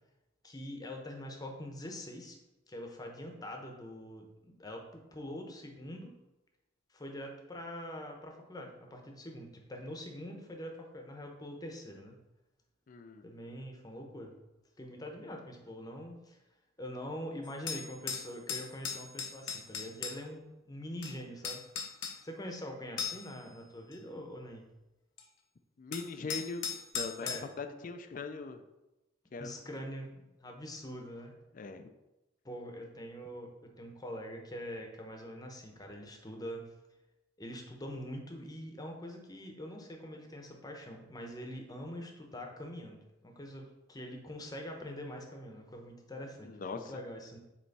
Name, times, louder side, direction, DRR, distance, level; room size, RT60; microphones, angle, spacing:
voice 1, 0.4-2.4 2.7-6.1 6.9-12.2 13.2-14.3 14.8-16.4 16.8-21.6 22.2-24.7 27.2-27.4 29.4-31.4 32.4-36.6 37.4-47.4, equal, 20° left, 2 dB, 0.8 m, -44 dB
voice 2, 12.9-13.2 25.8-27.3 27.6-28.6 29.3-29.5 31.5-31.9 46.4-46.9, left 4 dB, 45° left, 8 dB, 0.4 m, -41 dB
sound 1, 17.4-20.2 21.0-21.1 21.4-22.2 23.0-23.4 23.9-24.0 25.2-25.3 25.9-27.4, left 6 dB, 80° left, 0.8 m, -38 dB
7.7 x 3.1 x 4.1 m, 1.0 s
head